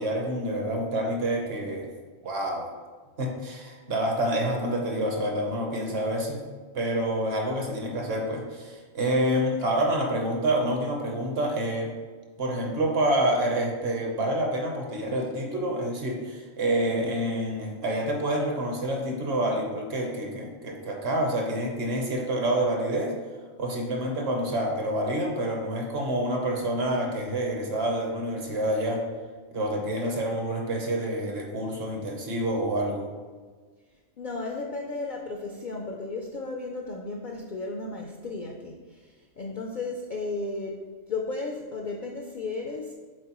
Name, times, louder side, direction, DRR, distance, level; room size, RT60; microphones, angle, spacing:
voice 1, 0.0-1.9 2.2-2.7 3.2-6.4 6.7-11.9 12.4-23.1 23.6-29.0 29.5-33.1, right 1 dB, 55° right, 1 dB, 1.0 m, -27 dB
voice 2, 34.2-42.9, left 3 dB, 60° left, 1 dB, 0.5 m, -34 dB
7.6 x 4.2 x 2.9 m, 1.4 s
omnidirectional pair, 1.4 m